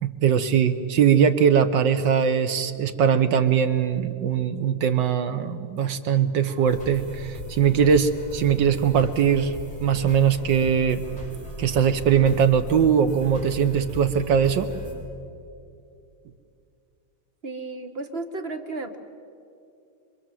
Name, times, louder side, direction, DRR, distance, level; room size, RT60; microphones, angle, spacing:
voice 1, 0.0-9.5 9.8-11.1 11.6-14.7, right 7 dB, 65° right, 9 dB, 1.5 m, -21 dB
sound 1, 6.6-14.9, left 2 dB, 20° left, 6.6 m, -38 dB
voice 2, 17.4-19.0, right 3 dB, 35° right, 5 dB, 1.2 m, -33 dB
26.0 x 23.0 x 7.6 m, 2.5 s
omnidirectional pair, 2.3 m